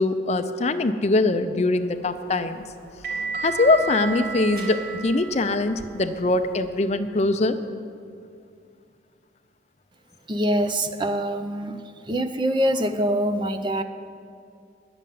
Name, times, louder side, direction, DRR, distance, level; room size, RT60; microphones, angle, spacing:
voice 1, 0.0-2.6 3.4-7.6, left 2 dB, 35° left, 9 dB, 0.5 m, -22 dB
sound 1, 1.9-6.8, right 4 dB, 55° right, 2.2 m, -34 dB
voice 2, 10.3-11.8 12.1-13.8, equal, 25° right, 8 dB, 0.6 m, -24 dB
11.0 x 7.1 x 9.3 m, 2.4 s
head